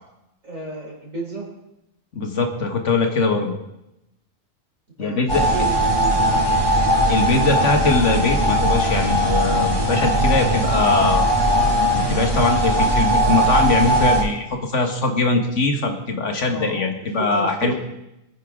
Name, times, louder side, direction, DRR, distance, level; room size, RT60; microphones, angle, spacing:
voice 1, 0.4-1.5 5.0-6.5 16.5-16.7 17.0-17.7, right 2 dB, 70° right, -2 dB, 4.4 m, -33 dB
voice 2, 2.2-3.5 5.0-5.5 7.1-11.3 11.9-17.7, left 3 dB, 60° left, 4 dB, 1.8 m, -21 dB
sound 1, 5.3-14.2, equal, 20° right, 2.0 m, -19 dB
23.0 x 9.4 x 3.7 m, 0.88 s
omnidirectional pair, 1.4 m